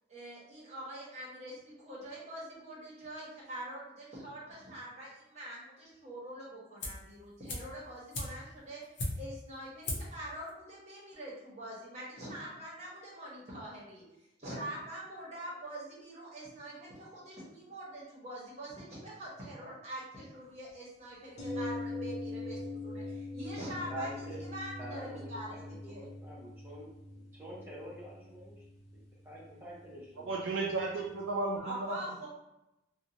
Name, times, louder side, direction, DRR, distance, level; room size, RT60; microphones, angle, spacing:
voice 1, 0.1-14.0 14.4-24.2 24.5-26.1 31.6-32.3, right 1 dB, 35° right, -6 dB, 1.0 m, -44 dB
sound 1, 6.8-7.1 7.5-9.5 9.8-10.2 10.5-10.6, left 1 dB, 75° left, 0.7 m, -38 dB
sound 2, 21.4-31.2 31.5-31.6, left 2 dB, 35° left, 0.5 m, -43 dB
voice 2, 23.9-24.4 24.8-26.9 27.1-28.6 29.2-30.4, equal, 10° right, -6 dB, 0.7 m, -46 dB
voice 3, 30.3-32.0, right 3 dB, 85° right, -2 dB, 0.4 m, -33 dB
2.6 x 2.2 x 2.8 m, 0.88 s
head